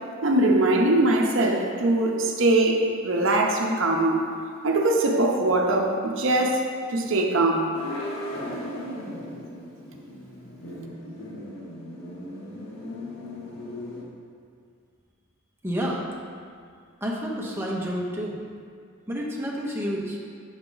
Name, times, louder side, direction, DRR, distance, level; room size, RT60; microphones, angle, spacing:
voice 1, 0.2-4.3 4.6-6.7 6.9-7.7, right 2 dB, 60° right, 1 dB, 0.7 m, -22 dB
sound 1, 7.7-14.0, left 1 dB, 90° left, 1.1 m, -37 dB
voice 2, 15.6-16.0 17.0-18.4 19.1-20.2, equal, 10° right, -3 dB, 0.8 m, -29 dB
7.2 x 4.7 x 3.9 m, 2.2 s
head